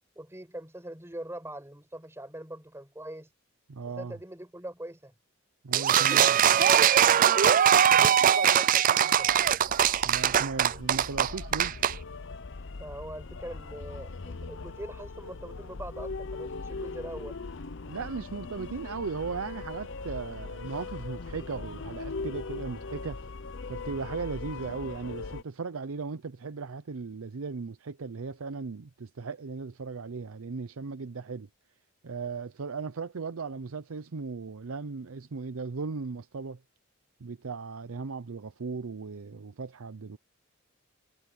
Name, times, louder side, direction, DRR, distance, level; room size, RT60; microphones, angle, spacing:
voice 1, 0.1-3.3 3.9-5.1 5.9-7.1 7.9-9.3 12.8-17.4, right 1 dB, 15° right, 5.1 m, -42 dB
voice 2, 3.7-4.2 5.6-6.4 8.0-8.1 10.0-11.8 17.9-23.3 23.7-31.5 32.0-36.6 37.2-40.2, right 4 dB, 85° right, 0.6 m, -37 dB
sound 1, 5.7-11.9, right 9 dB, 40° right, 0.4 m, -21 dB
sound 2, 9.2-25.4, left 3 dB, 60° left, 0.8 m, -40 dB
head